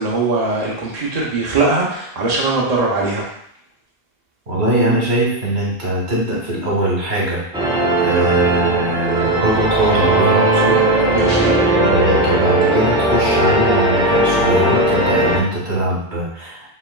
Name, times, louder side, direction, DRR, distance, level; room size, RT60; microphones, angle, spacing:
voice 1, 0.0-3.2 11.1-11.5, right 3 dB, 40° right, -4 dB, 0.9 m, -20 dB
voice 2, 4.5-10.8 11.1-11.4 11.8-16.7, right 1 dB, 80° right, -5 dB, 1.7 m, -21 dB
sound 1, 7.5-15.4, right 1 dB, 5° right, 0.7 m, -17 dB
4.4 x 3.5 x 2.3 m, 0.68 s
omnidirectional pair, 1.1 m